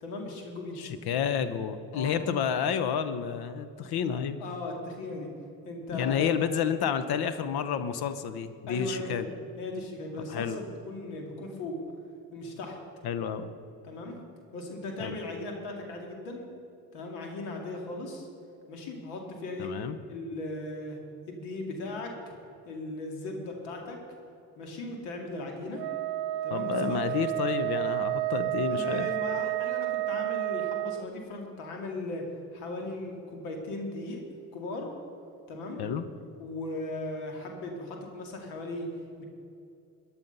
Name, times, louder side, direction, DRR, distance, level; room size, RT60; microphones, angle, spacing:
voice 1, 0.0-0.9 1.9-2.2 4.4-5.3 5.6-6.4 8.7-9.3 9.6-11.8 12.3-12.8 13.8-14.2 14.5-16.4 16.9-18.3 18.7-19.7 20.1-21.0 21.3-22.1 22.7-24.0 24.6-25.8 26.4-27.2 28.7-32.3 32.5-34.2 34.5-34.9 35.5-35.8 36.4-38.9 39.2-39.3, left 2 dB, 85° left, 2 dB, 2.5 m, -37 dB
voice 2, 0.8-4.4 5.9-9.3 10.3-10.6 13.0-13.5 15.0-15.2 19.6-20.0 26.5-29.1 35.8-36.0, left 7 dB, 65° left, 12 dB, 1.0 m, -30 dB
Wind instrument woodwind instrument, 25.8-31.1, right 17 dB, 65° right, 0.6 m, -31 dB
14.5 x 10.5 x 5.5 m, 2.6 s
supercardioid pair, 75°, 41 cm